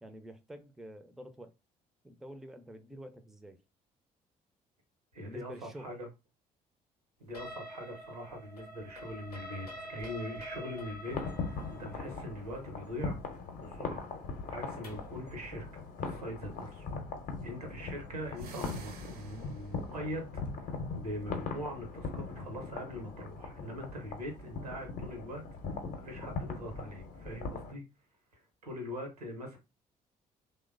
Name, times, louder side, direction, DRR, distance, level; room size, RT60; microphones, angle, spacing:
voice 1, 0.0-1.5 2.0-3.6 5.2-5.9, right 1 dB, ahead, 0.4 m, -48 dB
voice 2, 5.1-6.1 7.2-13.2 13.6-14.0 14.5-15.7 16.0-16.9 17.4-25.4 26.0-27.8 28.6-29.6, equal, 85° right, 0.7 m, -42 dB
sound 1, 7.3-15.2, equal, 85° left, 0.6 m, -47 dB
sound 2, 11.1-27.7, left 4 dB, 45° left, 0.7 m, -40 dB
sound 3, 18.3-19.9, right 6 dB, 50° right, 0.5 m, -49 dB
3.1 x 2.1 x 2.4 m
figure-of-eight pair, 45°, 19 cm